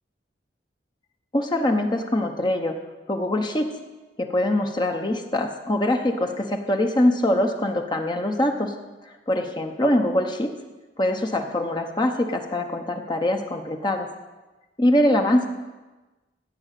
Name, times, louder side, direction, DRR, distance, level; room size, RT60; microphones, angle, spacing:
voice 1, 1.3-2.8 3.1-3.7 4.2-8.7 9.0-10.5 11.0-14.1 14.8-15.5, left 1 dB, 25° left, 4 dB, 0.9 m, -23 dB
14.5 x 5.5 x 9.1 m, 1.2 s
head